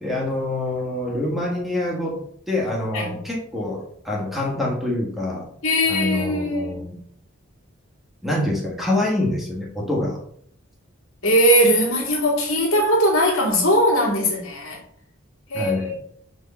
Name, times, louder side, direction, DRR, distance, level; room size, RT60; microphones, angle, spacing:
voice 1, 0.0-2.2 2.5-5.5 5.9-7.0 8.2-10.2 15.5-15.9, left 1 dB, ahead, -3 dB, 1.5 m, -25 dB
voice 2, 5.6-6.7 11.2-14.8 15.5-15.9, equal, 75° left, -2 dB, 2.4 m, -20 dB
6.2 x 3.6 x 5.6 m, 0.64 s
head